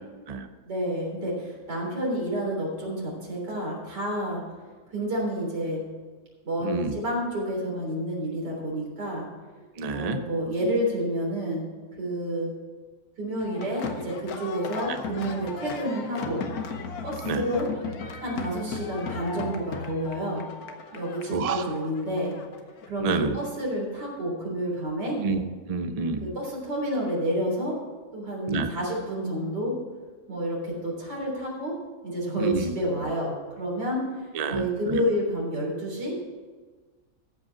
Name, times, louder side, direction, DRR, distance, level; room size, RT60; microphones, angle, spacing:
voice 1, 0.6-4.4 4.9-5.8 6.4-9.3 9.9-11.7 12.0-12.5 13.2-16.5 17.0-17.7 18.2-20.5 20.9-22.3 22.9-25.2 26.2-27.8 28.1-29.8 30.3-31.8 32.0-36.1, equal, 85° right, -3 dB, 4.2 m, -29 dB
voice 2, 6.6-7.0 9.8-10.2 17.2-17.4 21.3-21.7 23.0-23.4 25.2-26.3 28.5-28.7 32.4-32.7 34.3-35.0, right 4 dB, 50° right, 8 dB, 0.4 m, -28 dB
sound 1, 13.4-22.9, left 5 dB, 65° left, 1.4 m, -36 dB
14.5 x 5.4 x 7.1 m, 1.4 s
omnidirectional pair, 1.8 m